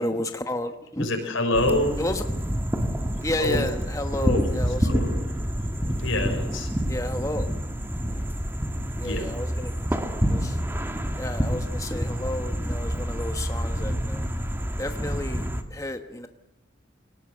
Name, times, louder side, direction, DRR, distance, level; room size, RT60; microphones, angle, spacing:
voice 1, 0.0-1.1 2.0-2.2 3.2-5.0 6.9-7.5 8.1-8.2 9.0-9.7 10.0-10.6 11.2-14.3 14.8-16.3, left 1 dB, 15° left, 6 dB, 1.2 m, -32 dB
voice 2, 1.0-2.0 3.4-3.6 4.2-4.5 4.8-5.2 6.0-6.7 9.0-9.3, left 2 dB, 85° left, 4 dB, 6.2 m, -26 dB
sound 1, 1.5-15.6, equal, 10° right, 1.5 m, -28 dB
24.0 x 19.0 x 8.0 m, 0.87 s
head